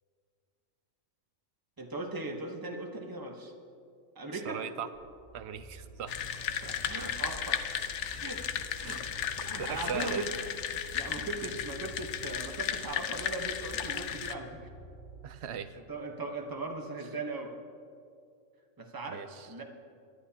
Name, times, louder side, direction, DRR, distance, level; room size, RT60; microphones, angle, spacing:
voice 1, 1.8-3.5 4.1-4.6 6.6-7.8 8.2-9.2 9.4-10.3 10.7-14.6 15.9-17.5 18.8-19.6, right 2 dB, 15° right, 2 dB, 1.0 m, -39 dB
voice 2, 4.3-4.9 5.3-6.1 8.0-8.2 8.8-10.3 15.2-15.8 19.1-19.5, right 8 dB, 60° right, 11 dB, 0.8 m, -39 dB
sound 1, 4.9-15.6, right 2 dB, ahead, 3.3 m, -51 dB
sound 2, 6.1-14.3, left 8 dB, 65° left, 0.9 m, -35 dB
24.0 x 11.5 x 2.9 m, 2.4 s
omnidirectional pair, 1.4 m